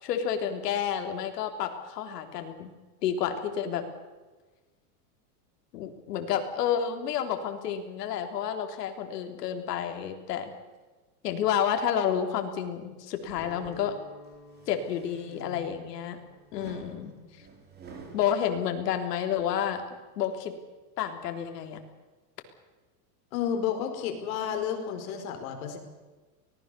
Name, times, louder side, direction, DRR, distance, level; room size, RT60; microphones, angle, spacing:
voice 1, 0.0-2.7 3.0-3.9 5.7-10.5 11.2-14.0 14.7-16.2 16.5-17.1 18.1-19.8 20.2-20.5 21.0-21.8, left 9 dB, 80° left, 5 dB, 3.7 m, -30 dB
Guitar, 13.3-19.4, left 2 dB, 35° left, 3.6 m, -54 dB
sound 1, 13.3-13.8 14.3-16.0 16.5-18.3, right 2 dB, 20° right, 3.9 m, -49 dB
voice 2, 23.3-25.8, left 8 dB, 60° left, 5 dB, 4.8 m, -32 dB
24.5 x 19.0 x 6.9 m, 1.3 s
supercardioid pair, 160°, 47 cm